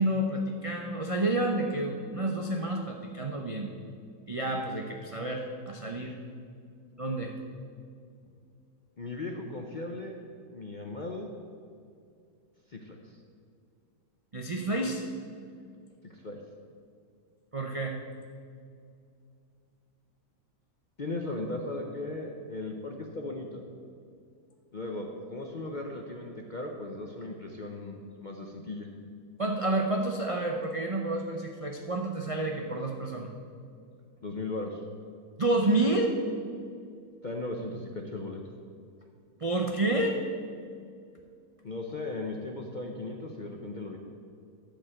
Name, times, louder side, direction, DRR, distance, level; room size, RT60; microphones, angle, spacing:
voice 1, 0.0-3.7 4.3-6.2 7.0-7.3 14.3-15.0 17.5-18.0 29.4-33.3 35.4-36.1 39.4-40.2, right 2 dB, 60° right, 1 dB, 0.3 m, -29 dB
voice 2, 9.0-10.2 10.5-11.3 12.7-13.2 16.0-16.4 21.0-23.6 24.7-28.9 34.2-34.8 37.2-38.4 41.6-44.0, left 2 dB, 50° left, 2 dB, 0.6 m, -37 dB
11.5 x 5.0 x 7.6 m, 2.4 s
omnidirectional pair, 1.8 m